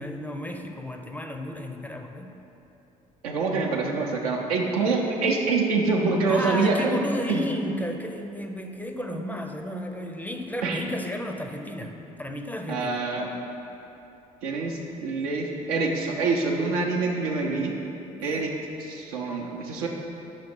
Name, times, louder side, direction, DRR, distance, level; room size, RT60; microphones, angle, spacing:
voice 1, 0.0-2.3 6.3-13.0 18.2-18.4, left 1 dB, 10° left, 4 dB, 0.5 m, -33 dB
voice 2, 3.2-7.0 7.3-7.4 10.6-10.8 12.7-13.3 14.4-17.7 18.2-18.5 18.8-19.9, right 3 dB, 80° right, 0 dB, 0.7 m, -25 dB
5.6 x 4.0 x 5.2 m, 2.9 s
hypercardioid pair, 50°, 19 cm